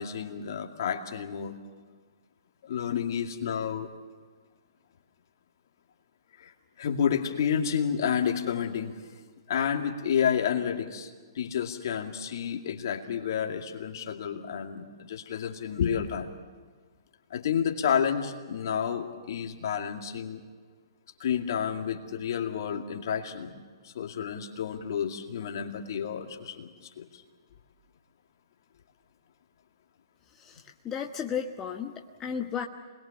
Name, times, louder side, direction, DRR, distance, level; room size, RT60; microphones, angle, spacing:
voice 1, 0.0-1.5 2.6-3.9 6.4-6.5 6.8-8.9 9.5-16.3 17.3-20.4 21.2-23.5 23.8-26.7 27.0-27.2, left 8 dB, 55° left, 4 dB, 2.3 m, -30 dB
voice 2, 30.4-31.9 32.2-32.7, left 7 dB, 20° left, 3 dB, 1.2 m, -33 dB
27.0 x 21.0 x 7.2 m, 1.5 s
figure-of-eight pair, 120°, 2 cm